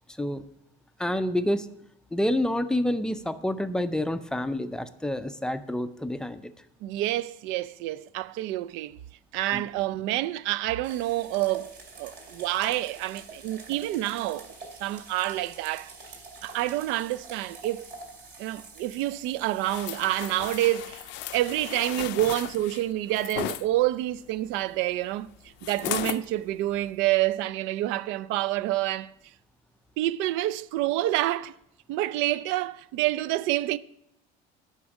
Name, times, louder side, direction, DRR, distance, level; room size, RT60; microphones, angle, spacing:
voice 1, 1.0-1.7 2.1-6.5 9.5-9.6, left 1 dB, 5° left, 0.4 m, -28 dB
voice 2, 6.8-9.0 9.3-14.5 14.8-15.9 16.4-17.9 18.4-25.3 25.6-29.1 30.0-31.5 31.9-33.8, right 15 dB, 75° right, 0.4 m, -28 dB
sound 1, 10.8-27.3, right 3 dB, 60° right, 2.5 m, -48 dB
sound 2, 19.6-23.6 25.6-26.3 26.8-26.9, left 15 dB, 70° left, 0.5 m, -35 dB
8.4 x 5.3 x 7.1 m
cardioid pair, 130°, 20 cm